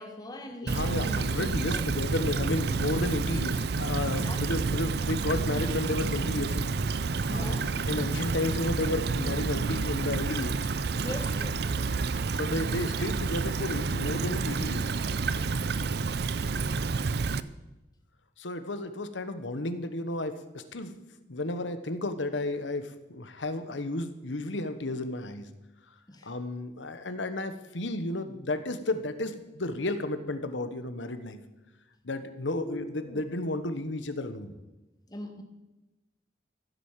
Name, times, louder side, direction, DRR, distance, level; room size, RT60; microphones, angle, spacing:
voice 1, 0.0-1.8 4.2-5.4 7.3-8.2 11.0-11.8 26.1-26.3 32.6-33.2 35.1-35.4, left 1 dB, 20° left, 4 dB, 1.7 m, -41 dB
voice 2, 0.6-6.7 7.3-7.6 7.9-10.7 12.3-14.9 18.4-20.9 21.3-25.5 26.2-31.4 32.0-34.5, left 2 dB, 85° left, 10 dB, 1.2 m, -32 dB
Stream / Trickle dribble, 0.7-17.4, right 4 dB, 60° right, 0.5 m, -29 dB
15.5 x 8.2 x 7.5 m, 1.0 s
head